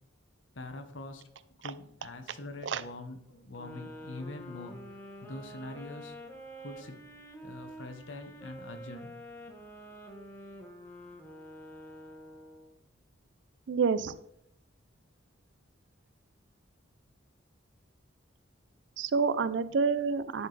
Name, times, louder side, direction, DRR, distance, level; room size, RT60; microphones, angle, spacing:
voice 1, 0.5-1.2 1.6-4.8 5.2-6.1 6.6-7.0 7.4-9.1 9.5-9.6, left 2 dB, 75° left, 7 dB, 1.0 m, -44 dB
sound 1, 3.5-12.8, equal, 10° left, 1.1 m, -48 dB
voice 2, 13.7-14.1 19.0-20.5, right 5 dB, 65° right, 14 dB, 0.4 m, -28 dB
11.0 x 4.3 x 3.3 m, 0.73 s
head